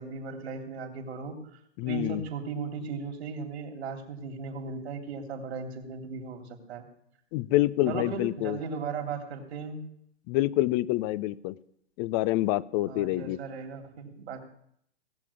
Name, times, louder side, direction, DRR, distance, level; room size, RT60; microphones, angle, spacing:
voice 1, 0.0-1.4 1.8-6.9 7.9-9.8 12.9-14.4, right 5 dB, 65° right, 5 dB, 3.3 m, -37 dB
voice 2, 1.8-2.2 7.3-8.6 10.3-11.6 12.0-13.4, left 17 dB, 35° left, 19 dB, 0.6 m, -27 dB
18.0 x 7.5 x 8.5 m, 0.71 s
hypercardioid pair, 115°, 34 cm